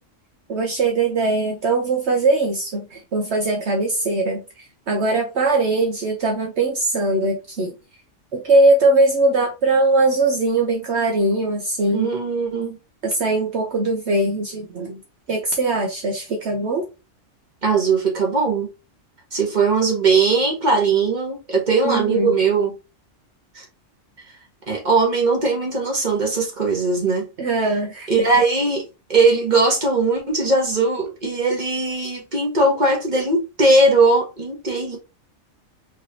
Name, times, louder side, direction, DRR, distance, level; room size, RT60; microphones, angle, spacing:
voice 1, 0.5-4.4 4.9-7.7 8.3-12.2 13.0-15.0 15.3-16.9 21.8-22.3 27.4-28.1, right 2 dB, 60° right, 1.1 m, -20 dB
voice 2, 11.9-12.8 17.6-18.7 19.3-22.7 23.5-23.6 24.7-27.2 28.1-28.8 29.1-35.0, right 3 dB, 35° right, 1.6 m, -19 dB
4.8 x 3.1 x 2.9 m
omnidirectional pair, 1.4 m